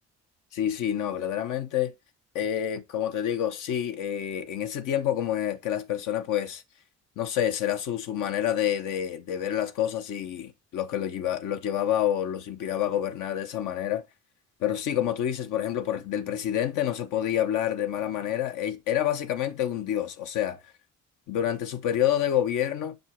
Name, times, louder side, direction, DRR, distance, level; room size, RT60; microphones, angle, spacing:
voice 1, 0.5-1.9 2.3-6.6 7.2-14.0 14.6-20.6 21.3-23.0, left 10 dB, 85° left, 0.9 m, -28 dB
6.4 x 5.4 x 3.0 m
cardioid pair, 90°, 30 cm